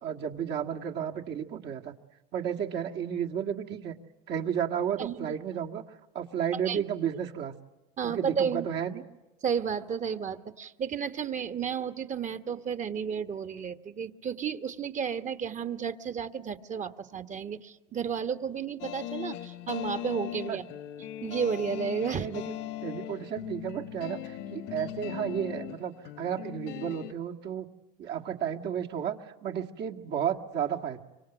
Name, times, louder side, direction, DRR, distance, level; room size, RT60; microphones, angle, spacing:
voice 1, 0.0-1.9 2.3-4.0 4.3-5.8 6.1-7.5 8.0-9.0 20.5-20.6 22.1-22.4 22.8-27.7 28.0-31.0, right 9 dB, 55° right, 2 dB, 1.9 m, -32 dB
voice 2, 5.0-5.3 6.7-6.8 8.0-8.7 9.4-20.6 21.2-22.3, right 7 dB, 35° right, 10 dB, 1.5 m, -32 dB
sound 1, 18.8-27.1, left 12 dB, 65° left, 1.4 m, -39 dB
25.0 x 25.0 x 9.1 m, 1.1 s
supercardioid pair, 95°, 21 cm